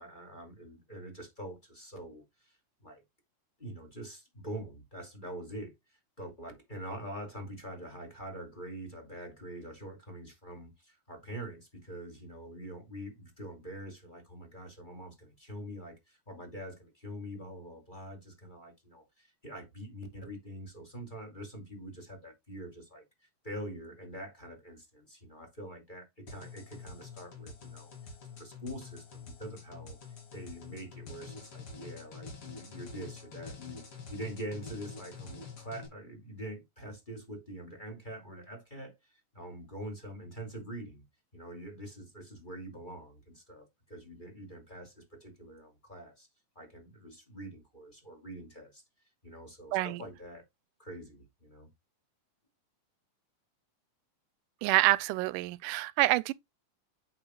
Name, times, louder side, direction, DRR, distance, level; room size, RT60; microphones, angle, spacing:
voice 1, 0.0-2.6 2.8-3.0 3.6-23.0 23.4-30.0 30.3-33.8 34.1-41.0 41.3-46.3 46.5-48.8 49.2-50.4 50.8-51.7, right 1 dB, 15° left, 2.4 m, -45 dB
sound 1, 26.3-35.9, left 4 dB, 45° left, 3.2 m, -47 dB
voice 2, 49.7-50.0 54.6-56.3, right 19 dB, 90° right, 2.1 m, -27 dB
8.9 x 7.5 x 2.3 m
omnidirectional pair, 3.6 m